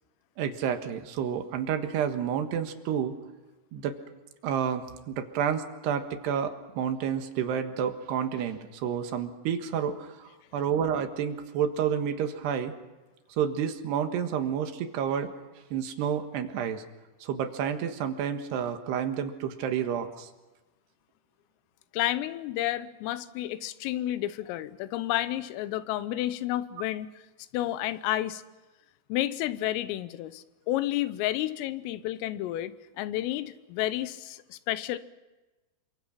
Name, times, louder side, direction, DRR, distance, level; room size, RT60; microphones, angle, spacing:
voice 1, 0.4-3.1 3.7-3.9 4.4-12.7 13.4-15.3 15.7-16.8 17.2-20.3, right 8 dB, 65° right, 6 dB, 3.2 m, -30 dB
voice 2, 21.9-27.1 27.5-28.4 29.1-35.0, left 14 dB, 85° left, 14 dB, 3.6 m, -31 dB
27.5 x 25.0 x 5.9 m, 1.1 s
omnidirectional pair, 5.8 m